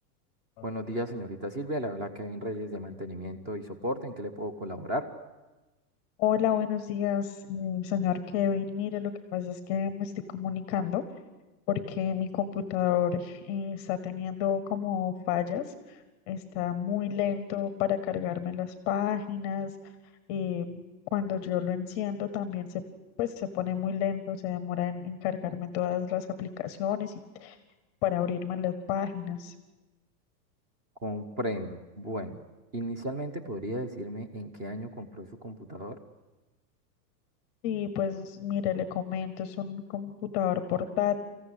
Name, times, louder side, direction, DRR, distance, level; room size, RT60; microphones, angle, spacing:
voice 1, 0.6-5.1 31.0-32.4 32.7-36.0, equal, 15° right, 9 dB, 0.8 m, -35 dB
voice 2, 6.2-11.0 11.7-16.0 16.3-19.7 20.3-22.8 23.2-27.1 27.4-27.6 28.0-29.5 37.6-41.2, left 9 dB, 20° left, 12 dB, 0.8 m, -30 dB
24.0 x 15.0 x 9.8 m, 1.1 s
supercardioid pair, 175°, 49 cm